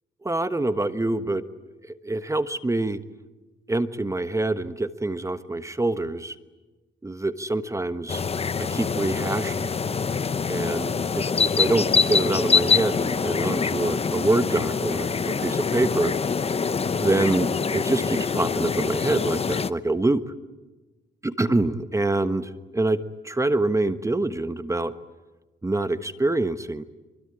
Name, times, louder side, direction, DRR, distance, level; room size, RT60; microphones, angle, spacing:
voice 1, 0.2-1.4 1.8-3.0 3.7-6.4 7.0-8.2 8.6-9.7 10.5-16.1 17.0-20.2 21.4-24.9 25.6-26.8, right 2 dB, 15° right, 11 dB, 1.3 m, -25 dB
sound 1, 8.1-19.7, left 5 dB, 30° left, 1.0 m, -25 dB
25.0 x 24.0 x 9.9 m, 1.2 s
cardioid pair, 90°, 20 cm